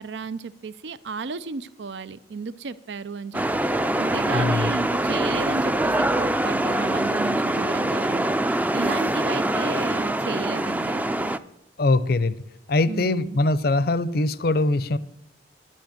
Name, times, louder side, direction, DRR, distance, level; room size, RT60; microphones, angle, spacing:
voice 1, 0.0-3.4 3.7-11.3 12.9-13.4, right 4 dB, 80° right, 0.5 m, -34 dB
sound 1, 3.3-11.4, right 1 dB, 10° right, 0.4 m, -24 dB
voice 2, 4.3-4.7 11.8-12.4 12.7-15.0, left 2 dB, 60° left, 0.6 m, -22 dB
11.0 x 7.5 x 9.3 m
head